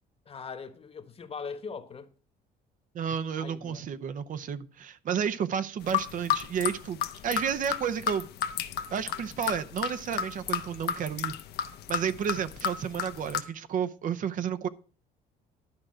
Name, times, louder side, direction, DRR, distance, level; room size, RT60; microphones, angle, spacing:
voice 1, 0.3-2.1 3.4-3.8, left 5 dB, 35° left, 1.2 m, -40 dB
voice 2, 2.9-7.0 7.2-8.3 8.9-11.3 11.9-14.7, right 7 dB, 50° right, 0.7 m, -31 dB
sound 1, 5.8-13.4, left 9 dB, 75° left, 0.9 m, -32 dB
11.5 x 4.9 x 7.6 m
cardioid pair, 110°, 17 cm